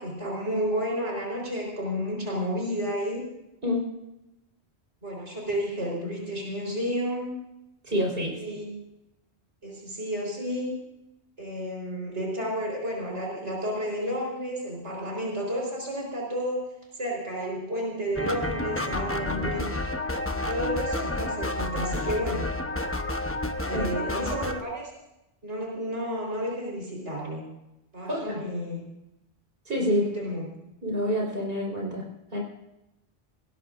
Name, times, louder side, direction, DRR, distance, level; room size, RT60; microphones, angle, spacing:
voice 1, 0.0-3.2 5.0-7.3 8.3-8.7 9.6-10.8 11.4-16.6 16.9-19.8 20.4-22.5 23.6-24.9 25.4-27.4 27.9-28.9 29.7-30.4, equal, 80° right, -2 dB, 4.7 m, -31 dB
voice 2, 7.8-8.6 23.7-24.2 28.0-28.4 29.7-30.0 30.8-32.0 32.3-32.4, equal, 55° right, -2 dB, 4.9 m, -28 dB
sound 1, 18.2-24.6, left 2 dB, 15° left, 0.9 m, -30 dB
20.0 x 19.0 x 2.6 m, 0.89 s
omnidirectional pair, 1.2 m